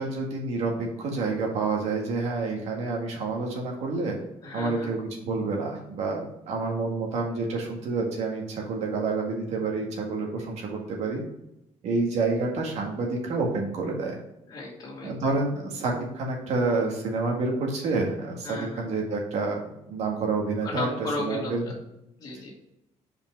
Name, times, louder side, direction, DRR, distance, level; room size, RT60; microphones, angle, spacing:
voice 1, 0.0-4.2 4.5-11.2 11.8-14.2 15.0-19.6 19.9-20.9 21.2-21.6, right 3 dB, 60° right, 0 dB, 1.9 m, -28 dB
voice 2, 4.4-4.9 14.5-15.2 18.4-18.8 20.6-21.5 22.2-22.5, left 2 dB, 30° left, -4 dB, 2.2 m, -34 dB
5.3 x 5.2 x 4.6 m, 0.85 s
cardioid pair, 170°, 12 cm